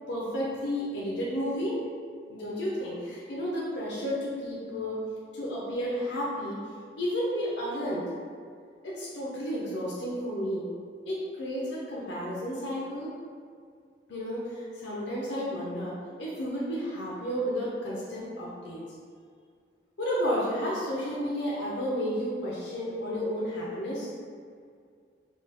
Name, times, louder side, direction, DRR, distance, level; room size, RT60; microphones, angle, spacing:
voice 1, 0.1-1.8 2.3-5.0 5.3-6.6 7.0-8.0 8.8-10.7 11.1-13.1 14.1-18.8 20.0-24.1, equal, 85° left, -6 dB, 0.6 m, -32 dB
3.1 x 2.2 x 3.1 m, 2.2 s
head